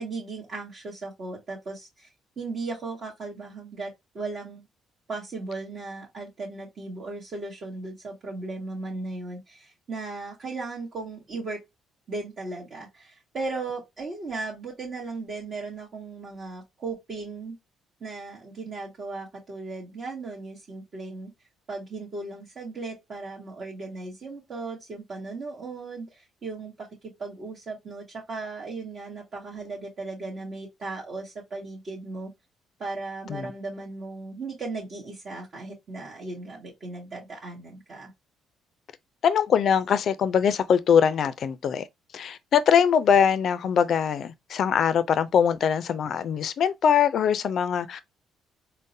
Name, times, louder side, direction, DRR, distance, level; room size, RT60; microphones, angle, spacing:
voice 1, 0.0-2.1 2.4-4.6 5.1-11.6 12.1-17.6 18.0-21.3 21.7-26.9 27.2-32.3 32.8-38.1, right 3 dB, 50° right, 0.9 m, -36 dB
voice 2, 39.2-41.8 42.1-48.0, left 7 dB, 60° left, 0.3 m, -22 dB
3.8 x 2.0 x 2.6 m
cardioid pair, 80°, 0 cm